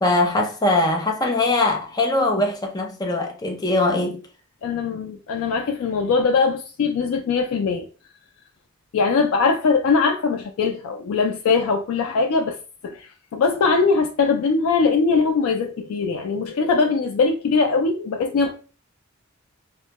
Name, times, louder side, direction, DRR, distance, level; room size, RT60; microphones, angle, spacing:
voice 1, 0.0-4.2, left 2 dB, 20° left, 0.4 m, -21 dB
voice 2, 4.6-7.9 8.9-12.6 12.8-18.5, left 4 dB, 85° left, 0.3 m, -21 dB
2.1 x 2.1 x 2.8 m
head